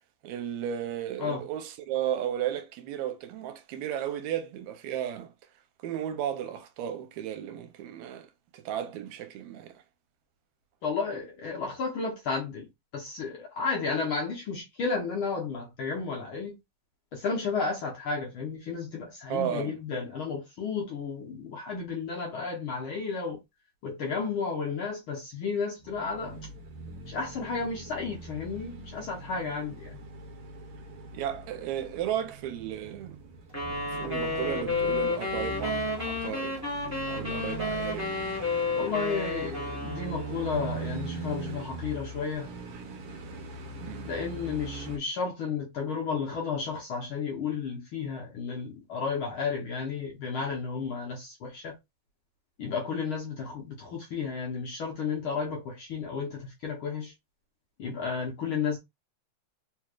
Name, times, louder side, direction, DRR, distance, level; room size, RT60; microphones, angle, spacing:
voice 1, 0.2-5.3 5.8-9.8 19.3-19.8 31.1-33.2 33.9-36.6 37.1-38.1 43.8-44.1, right 10 dB, 80° right, 2.0 m, -34 dB
voice 2, 10.8-12.7 12.9-16.5 17.1-23.4 23.8-26.4 27.1-30.0 38.8-42.5 44.0-51.8 52.6-57.1 57.8-58.8, left 5 dB, 65° left, 1.3 m, -32 dB
sound 1, 25.8-45.0, right 3 dB, 65° right, 1.6 m, -41 dB
sound 2, 33.5-40.5, left 3 dB, 20° left, 0.4 m, -31 dB
4.4 x 3.1 x 2.4 m
omnidirectional pair, 3.3 m